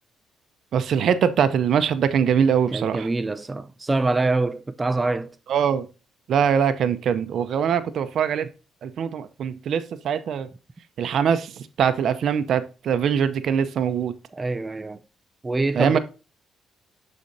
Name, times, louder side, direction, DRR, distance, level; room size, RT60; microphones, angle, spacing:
voice 1, 0.7-3.1 5.5-5.9 6.3-8.5 8.8-10.5 11.0-14.1 15.7-16.0, right 7 dB, 65° right, 0.6 m, -22 dB
voice 2, 2.7-5.4 14.3-15.0 15.4-16.0, right 3 dB, 20° right, 0.4 m, -25 dB
11.5 x 4.2 x 2.7 m
cardioid pair, 90°, 0 cm